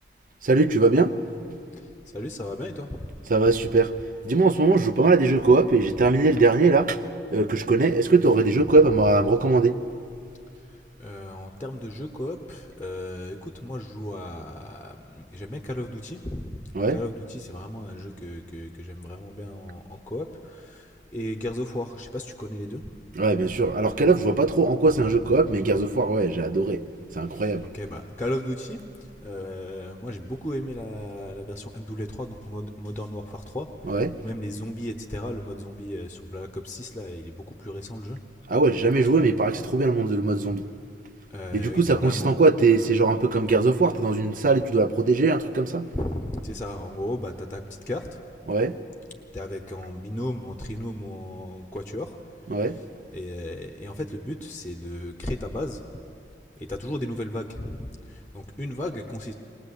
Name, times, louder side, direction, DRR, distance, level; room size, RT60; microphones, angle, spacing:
voice 1, 0.4-1.1 3.3-3.9 4.2-7.0 7.3-9.8 16.7-17.0 23.2-26.8 27.2-27.7 33.9-34.2 38.5-40.6 41.5-45.9 48.5-48.8 52.5-52.8, right 3 dB, 45° right, 0.7 m, -21 dB
voice 2, 2.1-3.0 8.8-8.9 11.0-16.6 16.9-22.8 24.9-25.2 27.3-28.8 29.2-38.2 41.3-42.3 45.9-48.1 49.3-52.2 52.6-52.8 53.1-55.8 56.6-59.3, left 1 dB, 10° left, 0.9 m, -35 dB
22.0 x 19.0 x 8.3 m
head